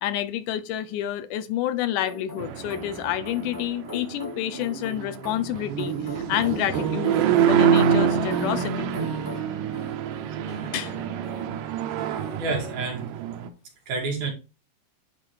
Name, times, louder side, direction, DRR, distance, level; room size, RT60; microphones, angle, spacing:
voice 1, 0.0-7.2 7.5-8.9 10.7-10.9, left 12 dB, 85° left, 2.2 m, -29 dB
sound 1, 2.0-9.4, left 3 dB, 25° left, 0.5 m, -40 dB
sound 2, 2.4-13.5, right 8 dB, 85° right, 2.2 m, -26 dB
sound 3, 6.7-12.7, left 2 dB, 60° left, 2.5 m, -45 dB
voice 2, 12.4-13.1 13.9-14.3, right 3 dB, 65° right, 2.9 m, -28 dB
9.7 x 3.7 x 3.2 m
omnidirectional pair, 3.7 m